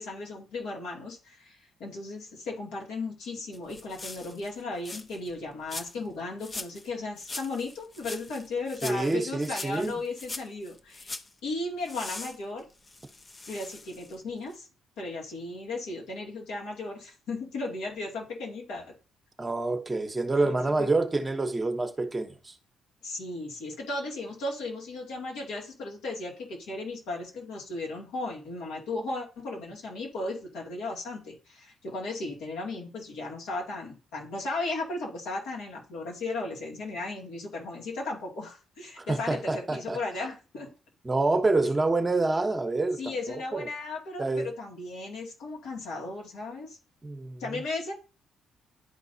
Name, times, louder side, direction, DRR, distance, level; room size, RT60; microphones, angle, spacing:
voice 1, 0.0-11.2 11.4-12.6 13.5-14.7 15.0-18.9 20.4-20.9 23.0-40.7 43.0-46.8 47.4-47.9, left 2 dB, 90° left, 2.3 m, -36 dB
sound 1, 3.5-5.3 5.7-6.1 6.4-6.9 7.2-11.3 11.9-14.2 14.5-14.6, left 2 dB, 30° left, 0.7 m, -42 dB
voice 2, 8.8-9.9 19.4-22.5 39.0-40.0 41.0-43.0 43.5-43.7 44.2-44.5 47.0-47.6, right 2 dB, 20° right, 1.0 m, -27 dB
11.0 x 4.0 x 2.7 m
cardioid pair, 90°, 0 cm